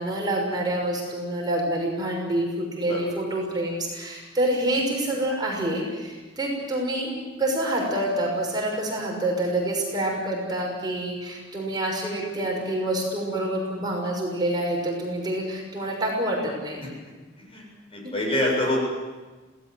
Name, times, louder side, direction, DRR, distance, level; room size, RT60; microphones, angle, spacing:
voice 1, 0.0-7.1 7.4-16.8 18.0-18.1, right 1 dB, 20° right, -1 dB, 6.3 m, -27 dB
voice 2, 17.9-18.8, left 1 dB, 30° left, -1 dB, 7.4 m, -25 dB
28.0 x 18.0 x 8.0 m, 1.3 s
head